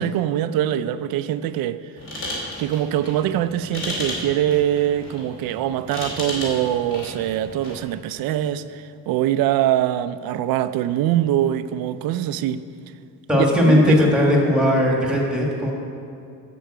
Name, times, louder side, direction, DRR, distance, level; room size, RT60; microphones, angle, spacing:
voice 1, 0.0-1.9 2.6-12.6 13.4-14.0, right 11 dB, 75° right, 0.5 m, -23 dB
sound 1, 2.0-7.9, left 1 dB, 35° left, 2.4 m, -34 dB
voice 2, 13.3-15.7, left 1 dB, ahead, 1.5 m, -18 dB
8.2 x 7.0 x 7.6 m
cardioid pair, 180°, 36 cm